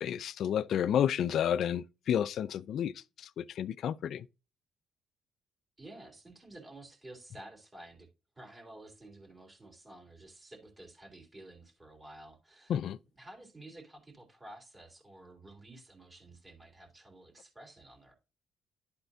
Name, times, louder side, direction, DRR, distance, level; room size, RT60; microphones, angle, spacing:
voice 1, 0.0-2.9 3.2-4.3 12.7-13.0, left 9 dB, 70° left, 0.4 m, -31 dB
voice 2, 5.8-8.1 8.3-12.7 13.1-18.1, right 1 dB, 20° right, 3.3 m, -52 dB
11.5 x 4.3 x 2.7 m
cardioid pair, 90°, 0 cm